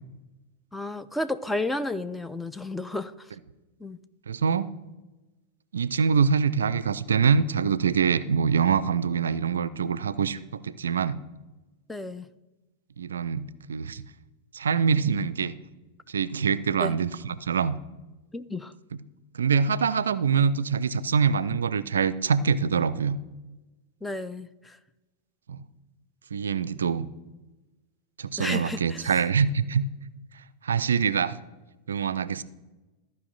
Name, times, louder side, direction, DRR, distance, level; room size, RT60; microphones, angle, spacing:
voice 1, 0.7-3.3 3.8-4.0 11.9-12.3 16.8-17.0 18.3-18.7 24.0-24.8 28.4-29.1, left 2 dB, 5° left, 12 dB, 0.4 m, -32 dB
voice 2, 4.3-4.7 5.7-11.2 13.0-14.1 14.5-15.5 16.1-17.8 19.3-23.2 25.5-25.6 26.3-27.1 28.2-29.9 30.6-31.4 31.9-32.4, right 6 dB, 70° right, 16 dB, 0.3 m, -24 dB
14.0 x 5.2 x 3.9 m, 1.1 s
figure-of-eight pair, 90°, 0 cm